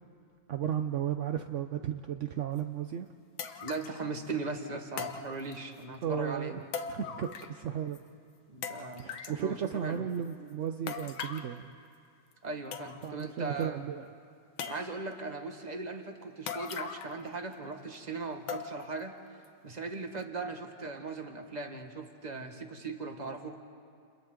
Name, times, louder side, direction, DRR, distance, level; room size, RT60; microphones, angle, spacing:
voice 1, 0.5-3.1 6.0-6.6 6.9-8.0 9.0-11.7 13.0-14.1, right 9 dB, 60° right, 6 dB, 0.8 m, -34 dB
sound 1, 2.6-2.7 3.4-4.0 5.0-5.8 6.7-7.7 7.9-8.0 8.6-9.4 10.9-11.5 12.3-12.4 12.7-13.2 13.6-13.7 14.6-15.2 16.5-17.2 17.5-17.6 18.5-19.0 19.4-19.5 20.2-20.3, left 6 dB, 85° left, 1.9 m, -40 dB
voice 2, 3.6-6.6 8.5-10.1 12.4-13.8 14.6-19.1 19.6-23.6, right 3 dB, 25° right, 5 dB, 1.4 m, -39 dB
30.0 x 29.5 x 3.8 m, 2.4 s
omnidirectional pair, 2.1 m